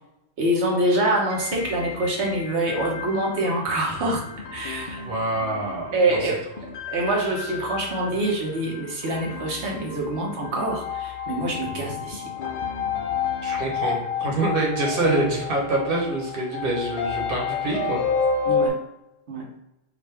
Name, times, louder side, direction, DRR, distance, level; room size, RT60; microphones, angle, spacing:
voice 1, 0.4-4.3 4.5-5.0 5.9-6.4 6.9-12.2 18.4-18.8 19.3-19.5, right 1 dB, 90° right, -1 dB, 1.3 m, -25 dB
sound 1, 1.3-18.7, left 6 dB, 75° left, 0.9 m, -31 dB
sound 2, 1.5-2.9 3.7-6.9 9.3-10.7 11.4-14.6, left 4 dB, 50° left, 0.5 m, -40 dB
voice 2, 5.0-6.3 13.4-18.0, right 2 dB, 55° right, -2 dB, 1.3 m, -25 dB
4.9 x 2.5 x 3.4 m, 0.90 s
omnidirectional pair, 1.1 m